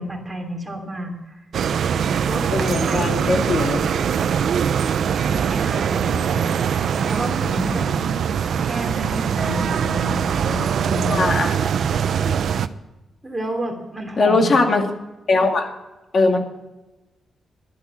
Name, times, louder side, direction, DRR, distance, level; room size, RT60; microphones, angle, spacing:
voice 1, 0.0-1.5 2.3-4.1 5.2-6.6 7.0-8.0 8.6-11.3 13.2-14.6, right 1 dB, 10° right, 1 dB, 3.1 m, -31 dB
sound 1, 1.5-12.7, right 7 dB, 65° right, 0.6 m, -22 dB
voice 2, 2.5-3.8 11.1-11.6 11.9-12.3 14.2-14.8 15.3-15.7 16.1-16.4, left 3 dB, 40° left, 4 dB, 2.2 m, -20 dB
11.5 x 10.5 x 7.3 m, 1.0 s
cardioid pair, 135°, 0 cm